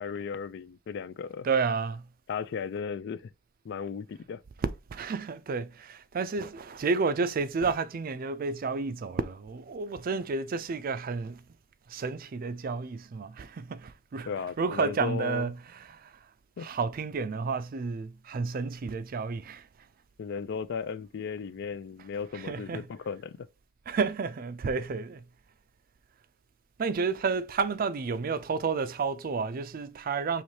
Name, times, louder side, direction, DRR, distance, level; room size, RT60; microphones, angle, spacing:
voice 1, 0.0-1.5 2.3-3.3 3.6-4.4 14.3-15.5 16.6-16.7 20.2-23.5, left 6 dB, 60° left, 0.3 m, -35 dB
voice 2, 1.4-2.1 4.9-11.4 11.9-16.2 16.6-19.7 22.3-22.8 23.9-25.2 26.8-30.4, right 4 dB, 45° right, 0.4 m, -31 dB
4.7 x 3.1 x 2.8 m
head